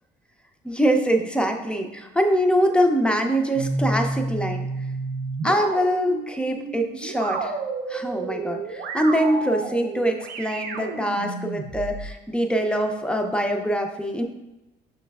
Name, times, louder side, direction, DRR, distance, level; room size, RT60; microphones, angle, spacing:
voice 1, 0.6-4.7 5.4-7.5 7.9-14.2, equal, 5° left, 4 dB, 0.4 m, -23 dB
sound 1, 3.5-12.1, right 3 dB, 85° right, 0.5 m, -31 dB
5.7 x 3.1 x 2.3 m, 0.97 s
cardioid pair, 110°, 17 cm